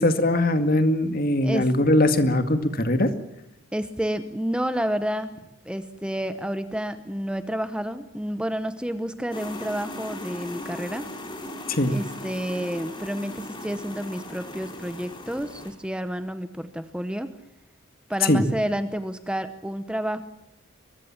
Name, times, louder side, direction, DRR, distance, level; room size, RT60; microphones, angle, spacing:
voice 1, 0.0-3.1 11.7-11.9 18.2-18.4, left 1 dB, 45° left, 9 dB, 2.1 m, -21 dB
voice 2, 1.4-1.7 3.7-5.3 5.6-11.1 11.9-17.3 18.1-20.2, equal, 5° right, 10 dB, 0.9 m, -30 dB
sound 1, 9.3-15.7, left 1 dB, 25° left, 4.2 m, -38 dB
23.5 x 21.5 x 7.3 m, 0.82 s
head